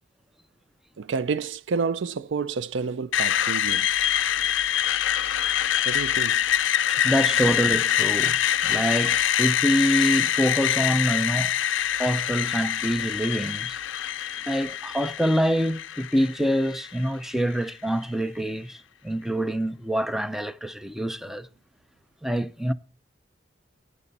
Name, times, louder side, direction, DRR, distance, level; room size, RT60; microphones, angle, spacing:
voice 1, 1.0-3.9 5.8-6.5, right 5 dB, 75° right, 0.4 m, -29 dB
Screech, 3.1-17.1, left 10 dB, 85° left, 0.5 m, -25 dB
voice 2, 6.9-8.4 8.6-11.5 12.0-13.8 14.5-18.8 19.0-21.5 22.2-22.7, equal, ahead, 0.5 m, -25 dB
11.0 x 9.5 x 4.1 m
head